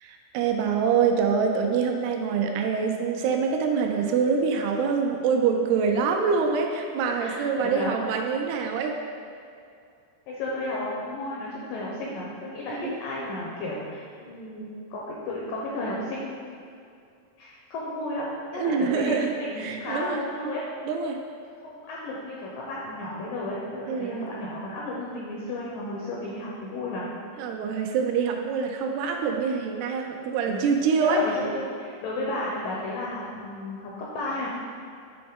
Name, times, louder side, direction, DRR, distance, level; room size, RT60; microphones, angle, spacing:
voice 1, 0.0-9.0 12.7-12.9 18.5-19.3 19.6-20.2 20.9-21.2 23.9-24.3 27.4-31.3, right 5 dB, 85° right, 3 dB, 2.5 m, -25 dB
voice 2, 7.2-8.0 10.3-16.4 17.4-18.3 18.5-20.6 21.6-27.1 30.5-30.6 31.0-34.5, left 1 dB, 85° left, -5 dB, 1.9 m, -33 dB
7.6 x 3.9 x 3.6 m, 2.4 s
omnidirectional pair, 4.5 m